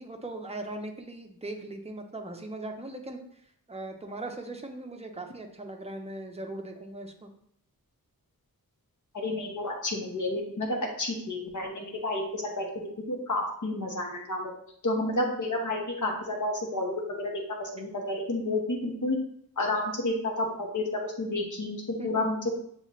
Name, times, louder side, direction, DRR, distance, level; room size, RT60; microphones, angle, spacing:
voice 1, 0.0-7.3 22.0-22.3, right 2 dB, 15° right, 3 dB, 0.6 m, -39 dB
voice 2, 9.1-12.6 13.1-14.5 14.8-19.2 19.6-22.4, left 2 dB, 55° left, 1 dB, 1.0 m, -30 dB
7.1 x 2.4 x 3.0 m, 0.68 s
wide cardioid pair, 80°, 37 cm